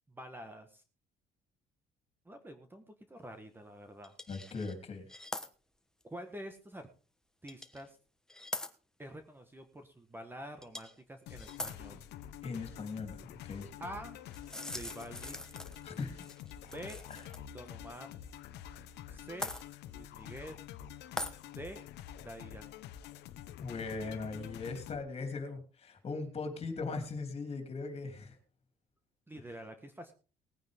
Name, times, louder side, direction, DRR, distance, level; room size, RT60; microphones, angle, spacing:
voice 1, 0.1-0.8 2.2-4.2 6.0-6.9 7.4-8.0 9.0-12.0 13.8-14.2 14.7-15.4 16.6-17.0 17.5-18.1 19.1-19.5 19.9-20.6 21.5-21.8 22.2-22.7 29.3-30.1, right 1 dB, 10° right, 7 dB, 1.5 m, -47 dB
sound 1, 4.0-4.7 5.1-5.5 6.0-6.1 7.5-7.8 8.3-8.7 10.6-11.0 11.4-11.8 14.3-17.4 17.7-17.8 19.4-19.6 21.2-21.4, left 1 dB, 5° left, 1.3 m, -42 dB
voice 2, 4.3-5.0 12.4-13.7 15.8-16.2 17.1-17.3 23.6-28.4, left 4 dB, 35° left, 6 dB, 3.3 m, -39 dB
sound 2, 11.3-25.0, left 10 dB, 85° left, 1.1 m, -48 dB
19.5 x 9.2 x 3.6 m, 0.36 s
cardioid pair, 110°, 17 cm